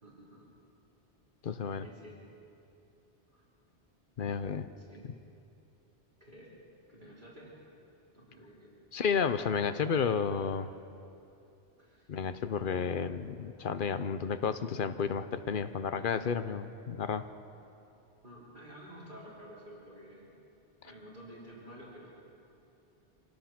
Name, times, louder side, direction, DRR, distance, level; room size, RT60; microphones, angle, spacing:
voice 1, 0.0-0.5 1.8-2.2 3.3-3.4 4.8-5.1 6.2-6.6 6.9-7.6 8.1-8.7 11.8-12.1 18.2-20.4 20.8-22.1, equal, 45° right, -6 dB, 3.6 m, -51 dB
voice 2, 1.4-1.9 4.2-4.7 8.9-10.7 12.1-17.2, left 6 dB, 55° left, 11 dB, 0.8 m, -32 dB
25.5 x 17.5 x 5.9 m, 2.8 s
omnidirectional pair, 1.1 m